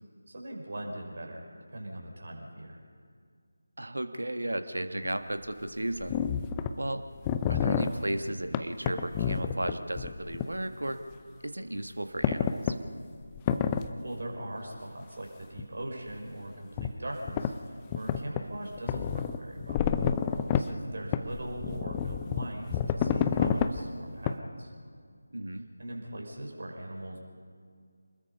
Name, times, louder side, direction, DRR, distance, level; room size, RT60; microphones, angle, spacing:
voice 1, 0.3-2.8 7.7-8.0 13.6-19.8 20.3-24.7 25.8-27.2, right 1 dB, 50° right, 0 dB, 5.4 m, -41 dB
voice 2, 3.8-6.2 6.8-7.0 7.5-11.0 11.4-12.7 25.3-25.7, right 1 dB, 65° right, 7 dB, 1.6 m, -34 dB
sound 1, 5.0-5.1 6.0-6.7 7.2-7.9 8.5-10.5 10.9-11.0 12.2-12.8 13.3-13.9 15.6-15.7 16.8-16.9 17.3-17.5 17.9-18.4 18.8-20.7 21.1-23.8 24.3-24.4, left 8 dB, 15° left, 0.6 m, -28 dB
28.0 x 20.5 x 5.5 m, 2.1 s
figure-of-eight pair, 160°, 0 cm